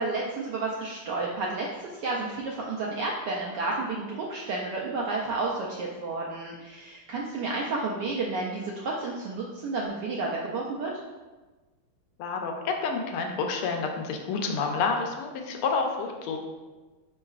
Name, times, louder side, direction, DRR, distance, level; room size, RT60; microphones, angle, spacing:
voice 1, 0.0-10.9, right 3 dB, 85° right, -3 dB, 0.9 m, -31 dB
voice 2, 12.2-16.4, left 4 dB, 85° left, 3 dB, 1.5 m, -29 dB
5.3 x 3.9 x 2.4 m, 1.3 s
omnidirectional pair, 2.4 m